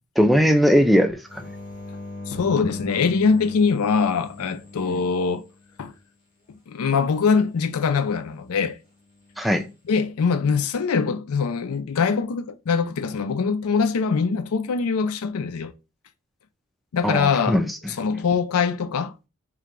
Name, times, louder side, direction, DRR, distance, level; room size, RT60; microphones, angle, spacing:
voice 1, 0.2-1.5 4.9-5.0 9.4-9.7 17.0-17.8, equal, ahead, 0.4 m, -19 dB
sound 1, 1.3-5.9 9.2-9.7, left 2 dB, 35° left, 1.7 m, -39 dB
voice 2, 2.3-5.4 5.8-5.9 6.7-8.8 9.9-15.7 16.9-17.6 18.0-19.1, left 5 dB, 80° left, 0.4 m, -23 dB
3.3 x 3.3 x 3.7 m
head